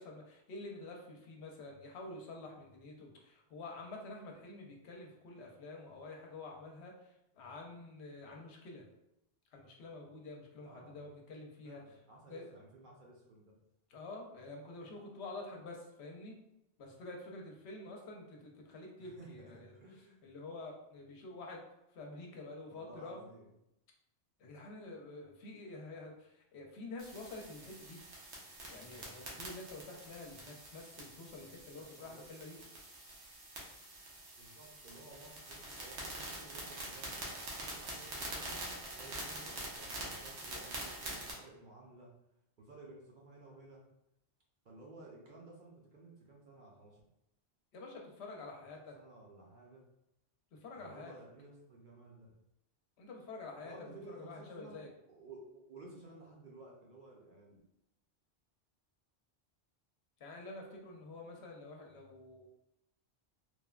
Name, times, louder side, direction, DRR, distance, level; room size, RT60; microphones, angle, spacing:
voice 1, 0.0-8.9 9.5-11.8 12.3-12.5 13.9-16.4 16.8-19.7 20.2-21.6 21.9-23.2 24.4-28.0 28.7-32.6 47.7-48.9 50.5-51.1 53.0-54.9 60.2-62.5, left 2 dB, 75° left, 0 dB, 0.9 m, -48 dB
voice 2, 10.6-11.2 11.6-13.6 19.0-19.3 19.5-20.2 22.6-23.5 31.7-32.7 34.4-38.5 38.9-42.1 42.6-43.8 44.6-47.0 48.9-49.8 50.8-52.3 53.6-54.8 55.1-57.6, right 2 dB, 55° right, -2 dB, 0.6 m, -55 dB
sound 1, 27.0-41.3, right 1 dB, 85° right, 1.0 m, -45 dB
3.2 x 2.1 x 2.3 m, 0.84 s
omnidirectional pair, 1.1 m